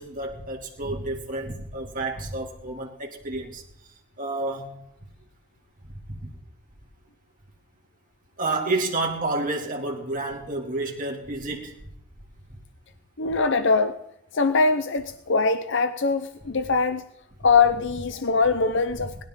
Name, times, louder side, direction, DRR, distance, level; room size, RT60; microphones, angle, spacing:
voice 1, 0.0-3.6 4.2-4.8 6.1-6.3 8.4-11.7, right 2 dB, 40° right, 1 dB, 2.5 m, -30 dB
voice 2, 13.2-14.0 14.3-17.0 17.4-19.2, left 4 dB, 55° left, 9 dB, 0.7 m, -22 dB
20.5 x 12.5 x 3.8 m, 0.78 s
head